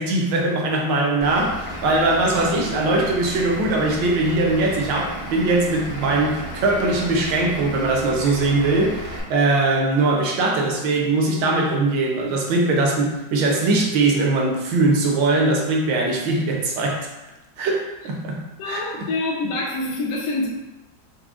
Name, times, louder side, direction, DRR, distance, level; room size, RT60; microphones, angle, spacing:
voice 1, 0.0-17.1 17.6-19.1, right 2 dB, 70° right, 0 dB, 1.3 m, -21 dB
Vehicle / Engine, 1.2-9.2, equal, 15° left, 0.5 m, -34 dB
voice 2, 18.6-20.5, left 2 dB, 65° left, -4 dB, 0.9 m, -26 dB
4.8 x 2.1 x 3.5 m, 1.0 s
omnidirectional pair, 2.2 m